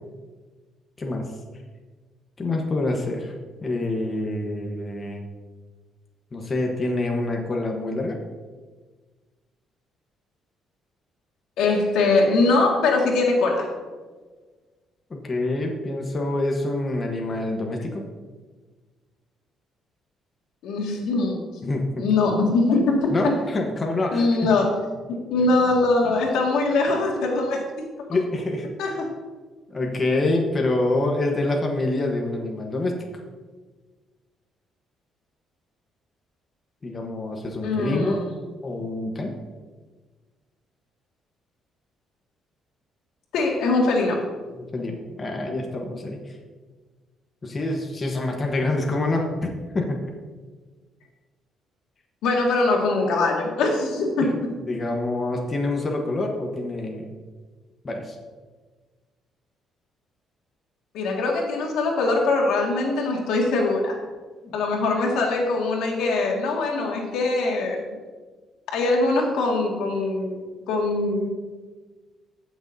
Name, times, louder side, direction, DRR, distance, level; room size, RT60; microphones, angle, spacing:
voice 1, 1.0-1.3 2.4-3.3 3.6-5.2 6.3-8.2 15.1-18.0 21.6-22.1 23.1-24.5 25.4-25.5 25.7-25.8 28.1-28.7 29.7-33.0 36.8-38.1 38.6-39.4 44.5-46.4 47.4-50.1 54.2-57.1 57.8-58.2 64.4-64.6, left 2 dB, 25° left, 1 dB, 1.0 m, -26 dB
voice 2, 11.6-13.7 20.6-21.4 22.0-23.4 24.1-24.7 25.1-27.6 28.8-29.1 37.6-38.3 43.3-44.2 52.2-54.3 60.9-64.0 64.5-67.9 68.7-71.3, left 3 dB, 90° left, 0 dB, 1.8 m, -22 dB
15.5 x 6.2 x 2.7 m, 1.4 s
cardioid pair, 140°, 0 cm